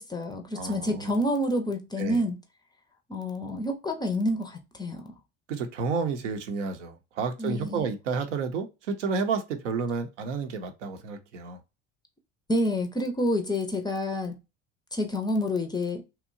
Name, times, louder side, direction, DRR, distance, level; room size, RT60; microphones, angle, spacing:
voice 1, 0.0-2.4 3.1-5.0 7.4-7.9 12.5-14.3 14.9-16.0, left 1 dB, 10° left, 0.4 m, -28 dB
voice 2, 0.5-1.1 2.0-2.2 5.5-11.6, right 5 dB, 75° right, 0.6 m, -31 dB
2.8 x 2.1 x 2.4 m
figure-of-eight pair, 65°, 37 cm